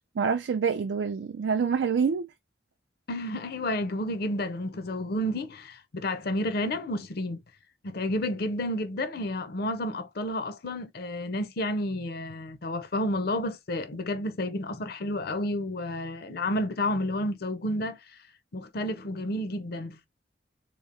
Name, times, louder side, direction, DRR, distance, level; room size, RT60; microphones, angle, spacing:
voice 1, 0.2-2.3, right 6 dB, 80° right, 0.4 m, -26 dB
voice 2, 3.1-7.4 7.8-18.0 18.5-20.1, left 1 dB, 60° left, 0.6 m, -31 dB
3.6 x 3.0 x 2.5 m
head